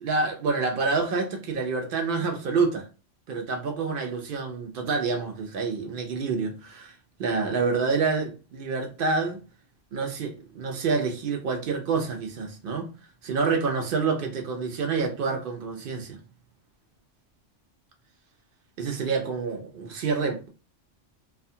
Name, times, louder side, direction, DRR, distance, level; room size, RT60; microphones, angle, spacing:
voice 1, 0.0-2.9 3.3-6.9 7.2-9.4 9.9-12.9 13.2-16.2 18.8-20.5, right 4 dB, 55° right, 0.7 m, -27 dB
2.4 x 2.2 x 2.7 m
omnidirectional pair, 1.3 m